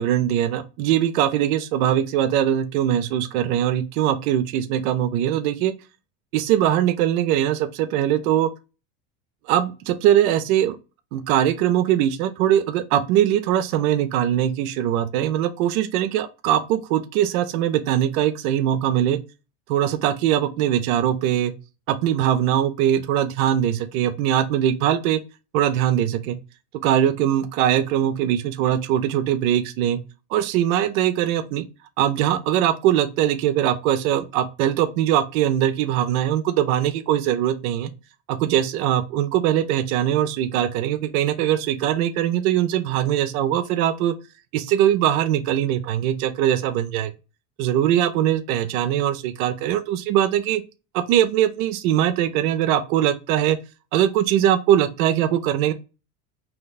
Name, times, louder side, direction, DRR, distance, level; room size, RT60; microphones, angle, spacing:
voice 1, 0.0-5.7 6.3-8.5 9.5-10.8 11.1-19.2 19.7-21.5 21.9-25.2 25.5-26.4 26.8-30.0 30.3-31.6 32.0-37.9 38.3-44.2 44.5-47.1 47.6-50.6 50.9-53.6 53.9-55.7, right 11 dB, 80° right, 0.6 m, -21 dB
2.8 x 2.2 x 3.9 m
supercardioid pair, 135°, 42 cm